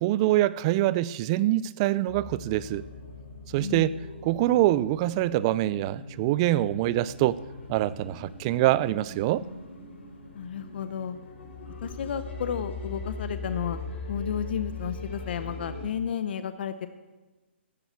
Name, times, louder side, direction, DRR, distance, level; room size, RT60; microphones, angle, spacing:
voice 1, 0.0-2.8 3.5-3.9 4.2-7.4 7.7-9.4, right 15 dB, 30° right, 19 dB, 0.4 m, -24 dB
sound 1, 2.1-15.8, left 3 dB, 80° left, 3.6 m, -40 dB
voice 2, 3.6-3.9 10.3-11.2 11.8-13.8 14.1-16.9, left 8 dB, 60° left, 11 dB, 0.8 m, -32 dB
13.5 x 7.9 x 8.2 m, 1.2 s
hypercardioid pair, 150°, 6 cm